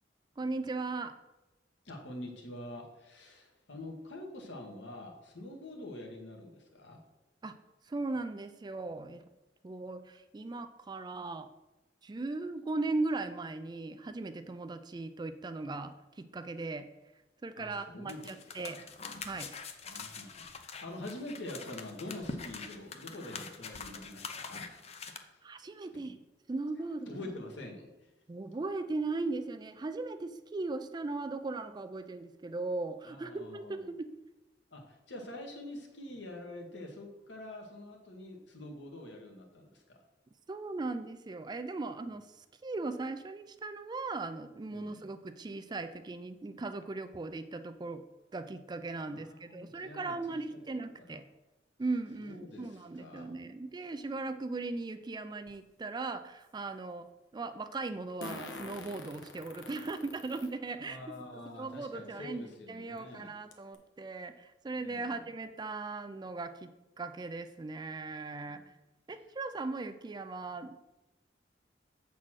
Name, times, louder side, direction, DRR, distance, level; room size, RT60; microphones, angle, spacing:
voice 1, 0.4-1.1 7.4-7.6 7.9-9.2 9.6-11.5 12.0-16.9 17.4-18.8 19.2-19.5 25.4-26.2 26.5-27.1 28.3-34.0 40.5-42.3 42.6-48.0 48.3-51.3 51.8-57.0 57.3-61.0 61.6-62.4 62.7-66.7 67.0-68.6 69.1-70.8, right 3 dB, 25° right, 9 dB, 0.3 m, -38 dB
voice 2, 1.8-7.0 17.6-18.9 19.8-25.4 27.0-28.1 33.0-33.9 34.7-40.0 44.7-45.1 49.0-51.2 52.2-53.4 60.8-63.3 64.8-65.3 68.4-68.7, left 1 dB, 70° left, 2 dB, 1.4 m, -46 dB
sound 1, 18.1-25.2, left 4 dB, 35° left, 0.6 m, -44 dB
Fart, 55.5-55.6 58.2-60.5 61.1-61.2 62.5-62.6 63.0-63.1 63.5-63.7, left 2 dB, 90° left, 1.1 m, -45 dB
7.4 x 4.1 x 6.2 m, 1.0 s
head